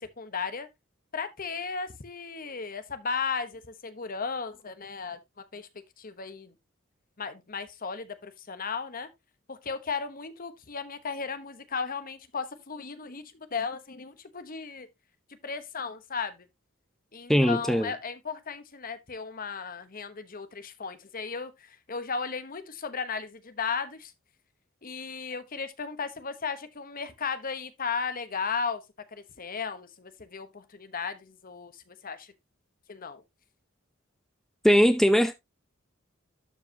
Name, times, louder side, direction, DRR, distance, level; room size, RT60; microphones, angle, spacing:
voice 1, 0.0-0.7 1.1-5.2 5.5-5.7 6.0-6.5 7.2-9.1 9.5-14.9 15.4-16.5 17.1-24.1 24.8-28.8 29.1-32.3 32.9-33.2, left 5 dB, 45° left, 1.1 m, -35 dB
voice 2, 17.3-17.9 34.6-35.3, equal, ahead, 0.5 m, -20 dB
12.0 x 4.8 x 2.8 m
head